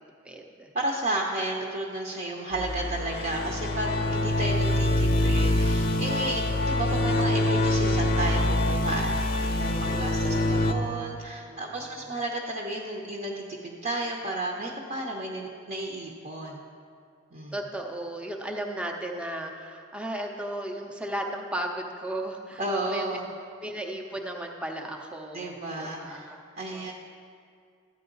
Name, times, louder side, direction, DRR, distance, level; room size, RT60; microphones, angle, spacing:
voice 1, 0.2-0.7 9.7-10.6 11.5-12.1 17.5-23.2 23.6-26.4 26.7-26.9, right 1 dB, 5° right, 1 dB, 0.7 m, -36 dB
voice 2, 0.7-16.6 17.3-17.5 22.6-23.3 25.3-26.2 26.6-26.9, right 2 dB, 40° right, -2 dB, 0.9 m, -32 dB
sound 1, 2.5-10.7, left 1 dB, 45° left, 0.6 m, -25 dB
13.5 x 9.1 x 3.9 m, 2.3 s
head